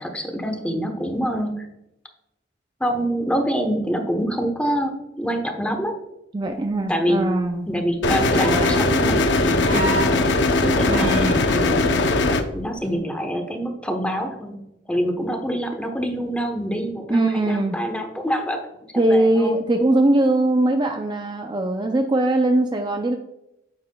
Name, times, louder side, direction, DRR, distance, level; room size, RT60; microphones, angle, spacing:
voice 1, 0.0-1.7 2.8-5.9 6.9-7.2 7.7-10.2 10.6-11.2 11.5-11.9 12.5-14.5 14.9-18.7 18.9-19.6, equal, 5° left, 4 dB, 0.9 m, -26 dB
voice 2, 6.3-7.7 10.9-11.4 17.1-17.8 19.0-23.2, right 1 dB, 25° right, 4 dB, 0.4 m, -21 dB
sound 1, 8.0-12.4, left 2 dB, 75° left, 0.7 m, -19 dB
sound 2, 8.3-8.8 9.6-10.1 10.9-11.4 12.8-12.9, right 1 dB, 75° right, 2.7 m, -28 dB
9.2 x 7.1 x 2.3 m, 0.87 s
head